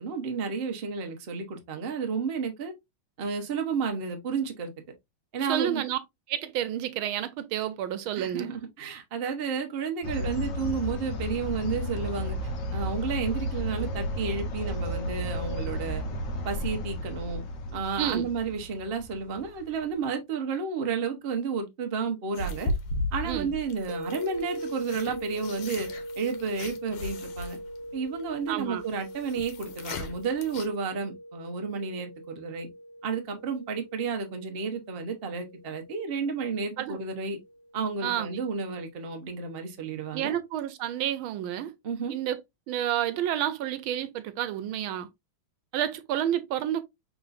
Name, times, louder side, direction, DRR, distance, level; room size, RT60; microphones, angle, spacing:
voice 1, 0.0-2.7 3.2-4.7 5.3-5.8 8.2-12.4 12.7-16.0 16.4-17.4 17.7-22.7 23.1-25.9 26.2-27.6 27.9-32.7 33.0-37.4 37.7-40.3 41.8-42.1, right 5 dB, 45° right, 0.8 m, -32 dB
voice 2, 5.5-6.0 6.3-8.5 18.0-18.3 23.2-23.5 28.5-28.8 36.8-37.0 38.0-38.3 40.1-41.7 42.1-42.4 42.7-45.1 45.7-46.8, right 11 dB, 85° right, 1.5 m, -30 dB
sound 1, 10.0-19.8, equal, 70° left, 1.3 m, -33 dB
sound 2, 22.3-30.7, left 2 dB, 85° left, 1.7 m, -36 dB
sound 3, 23.9-38.8, equal, 65° right, 1.5 m, -42 dB
5.0 x 3.7 x 2.5 m
omnidirectional pair, 2.2 m